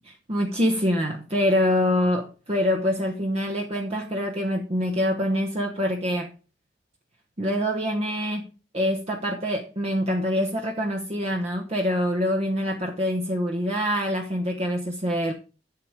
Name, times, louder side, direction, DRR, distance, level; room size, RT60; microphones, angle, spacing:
voice 1, 0.3-6.3 7.4-15.3, equal, 35° right, 1.0 m, -25 dB
8.7 x 7.6 x 4.9 m
head